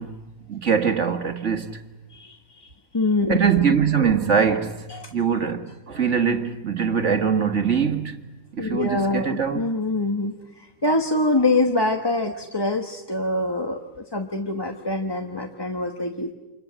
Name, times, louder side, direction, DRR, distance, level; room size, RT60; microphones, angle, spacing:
voice 1, 0.0-1.8 3.3-8.2 8.5-9.7, right 7 dB, 55° right, 1.9 m, -23 dB
voice 2, 2.1-3.4 4.9-5.1 8.6-16.3, left 2 dB, 20° left, 1.2 m, -25 dB
29.0 x 27.0 x 7.6 m
omnidirectional pair, 1.5 m